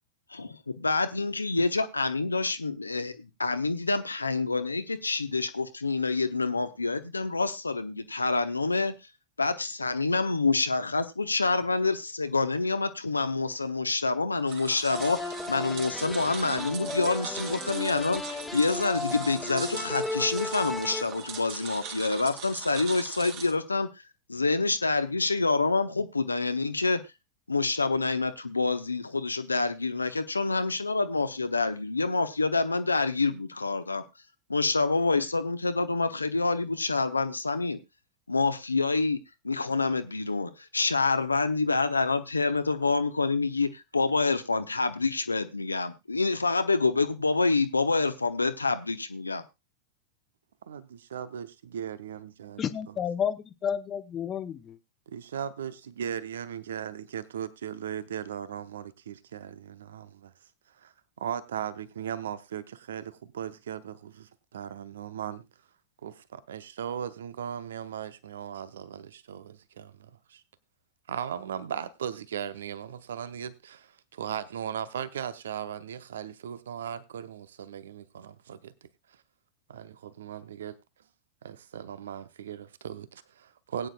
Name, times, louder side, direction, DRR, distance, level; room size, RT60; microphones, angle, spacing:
voice 1, 0.3-8.9 9.4-23.9 24.3-27.0 27.5-34.0 34.5-37.8 38.3-39.2 39.4-49.4, left 3 dB, 80° left, 0.8 m, -27 dB
sound 1, 14.5-23.5, right 6 dB, 45° right, 2.4 m, -41 dB
sound 2, 14.9-21.9, left 3 dB, 5° left, 1.5 m, -36 dB
voice 2, 50.7-52.9 55.1-60.3 60.8-65.4 66.0-70.4 71.1-78.7 79.7-80.8 81.4-83.9, right 9 dB, 65° right, 0.7 m, -38 dB
voice 3, 52.6-54.8, left 8 dB, 25° left, 0.8 m, -31 dB
20.0 x 9.1 x 2.3 m
figure-of-eight pair, 90°, 0 cm